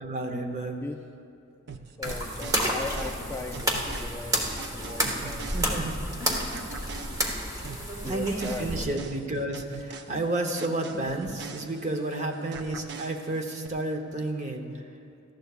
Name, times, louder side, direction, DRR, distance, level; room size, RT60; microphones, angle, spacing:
voice 1, 0.0-0.8 5.4-6.0 8.1-14.6, right 2 dB, 35° right, 4 dB, 0.9 m, -31 dB
sound 1, 1.7-6.1 6.5-12.1 12.5-13.7, right 5 dB, 55° right, 0.6 m, -43 dB
voice 2, 2.0-5.6 8.0-9.1, left 3 dB, 10° left, 3 dB, 0.3 m, -38 dB
sound 2, 2.0-8.8, equal, 15° right, 1.2 m, -30 dB
18.5 x 14.0 x 2.4 m, 2.5 s
head